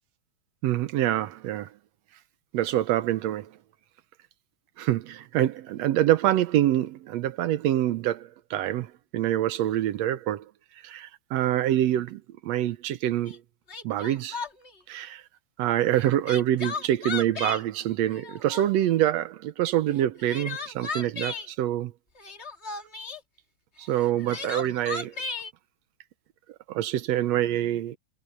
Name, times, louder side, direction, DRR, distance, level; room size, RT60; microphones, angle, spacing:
voice 1, 0.6-1.7 2.5-3.5 4.8-10.5 10.8-13.4 13.8-14.4 14.9-15.2 15.6-21.9 23.8-25.1 26.7-28.0, right 12 dB, 70° right, 1.8 m, -26 dB
Crying sobbing, 13.3-13.4 13.7-14.7 16.0-17.6 18.1-18.9 20.0-21.5 22.2-23.2 24.0-25.5, left 4 dB, 25° left, 1.6 m, -35 dB
omnidirectional pair, 3.5 m